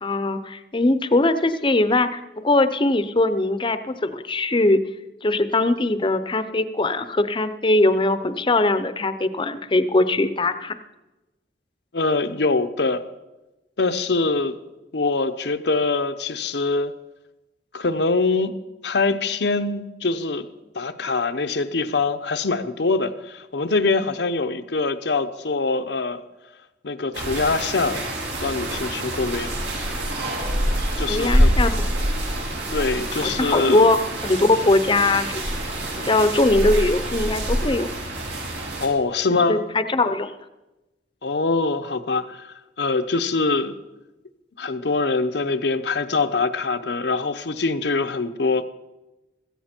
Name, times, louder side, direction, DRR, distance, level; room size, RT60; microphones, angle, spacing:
voice 1, 0.0-4.8 5.2-10.8 30.9-31.8 33.1-34.0 34.2-35.5 36.0-37.9 39.5-40.3, left 2 dB, 30° left, 11 dB, 0.7 m, -21 dB
voice 2, 11.9-13.0 13.8-14.6 14.9-16.9 17.7-18.5 18.8-20.5 20.7-26.2 26.8-28.0 28.4-29.9 31.0-31.6 32.7-33.9 38.8-39.6 41.2-43.8 44.6-48.7, left 3 dB, 70° left, 9 dB, 0.8 m, -23 dB
sound 1, 27.1-38.9, equal, 75° right, 3.4 m, -26 dB
16.5 x 14.0 x 4.4 m, 1.0 s
head